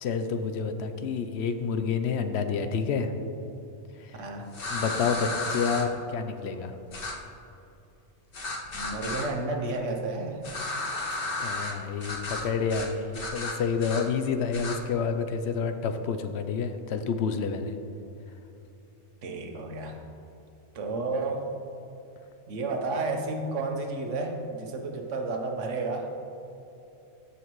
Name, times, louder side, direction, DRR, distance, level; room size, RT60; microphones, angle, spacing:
voice 1, 0.0-3.1 4.7-6.7 11.4-17.8, left 5 dB, 70° left, 8 dB, 0.8 m, -29 dB
voice 2, 4.2-4.5 8.7-10.4 19.2-20.0 20.7-21.6 22.5-26.1, right 3 dB, 90° right, 3 dB, 1.3 m, -31 dB
sound 1, 4.5-5.8 6.9-7.1 8.3-9.3 10.4-11.7 12.0-12.4 12.7-12.9 13.1-14.0 14.5-14.8, left 2 dB, 50° left, 1.2 m, -33 dB
14.0 x 5.8 x 3.1 m, 2.9 s
omnidirectional pair, 1.2 m